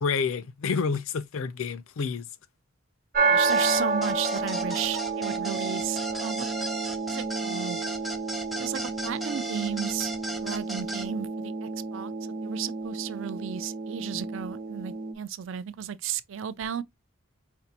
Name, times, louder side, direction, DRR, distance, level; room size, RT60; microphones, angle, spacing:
voice 1, 0.0-2.2, left 5 dB, 75° left, 0.5 m, -29 dB
sound 1, 3.1-15.1, right 4 dB, 40° right, 0.9 m, -30 dB
voice 2, 3.3-6.5 7.1-7.8 8.5-10.1 10.4-12.1 12.4-16.8, right 9 dB, 65° right, 0.4 m, -34 dB
sound 2, 3.5-11.1, right 1 dB, ahead, 0.4 m, -36 dB
5.3 x 2.5 x 2.8 m
head